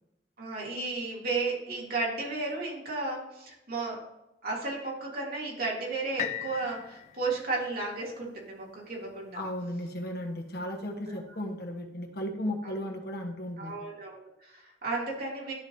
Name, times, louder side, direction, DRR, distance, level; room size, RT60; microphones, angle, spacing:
voice 1, 0.4-4.0 4.4-9.4 11.1-11.2 12.6-12.9 13.6-15.5, right 3 dB, 55° right, -4 dB, 2.9 m, -34 dB
sound 1, 6.2-10.1 10.7-10.8, left 11 dB, 40° left, 0.3 m, -41 dB
voice 2, 9.3-13.8, left 1 dB, 60° left, 2 dB, 1.5 m, -35 dB
12.5 x 5.0 x 2.8 m, 0.89 s
head